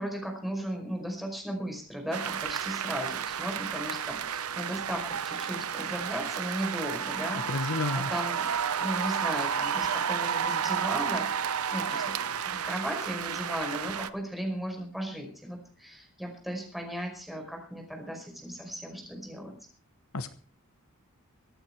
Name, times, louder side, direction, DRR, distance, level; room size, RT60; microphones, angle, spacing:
voice 1, 0.0-8.5 8.8-12.2 12.4-19.6, equal, ahead, 1 dB, 5.1 m, -36 dB
sound 1, 2.1-14.1, right 7 dB, 80° right, 0.8 m, -31 dB
voice 2, 7.5-8.1 20.1-20.3, left 2 dB, 70° left, 11 dB, 1.1 m, -30 dB
24.5 x 8.9 x 4.7 m, 0.39 s
head